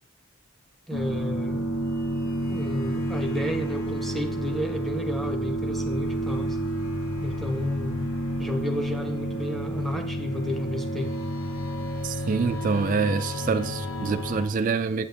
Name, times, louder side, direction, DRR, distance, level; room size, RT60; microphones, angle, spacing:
sound 1, 0.9-14.5, equal, 75° left, 1.0 m, -30 dB
voice 1, 0.9-1.7 2.5-6.6 7.2-8.1 8.4-11.1, equal, ahead, 5 dB, 0.7 m, -32 dB
voice 2, 12.0-15.1, right 4 dB, 40° right, 8 dB, 0.3 m, -26 dB
8.4 x 6.9 x 3.4 m, 0.70 s
head